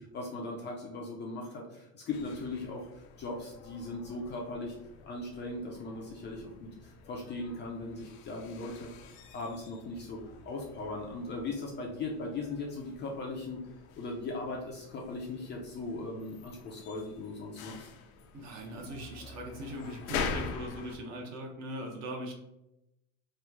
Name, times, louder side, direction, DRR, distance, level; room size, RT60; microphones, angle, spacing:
voice 1, 0.1-4.8 5.1-10.2 10.5-13.6 14.0-17.9, left 2 dB, 25° left, -1 dB, 0.4 m, -39 dB
sound 1, 2.1-21.0, left 5 dB, 80° left, 0.6 m, -45 dB
voice 2, 18.3-22.3, equal, 40° right, 1 dB, 0.8 m, -40 dB
3.1 x 2.2 x 3.4 m, 0.88 s
supercardioid pair, 135°, 42 cm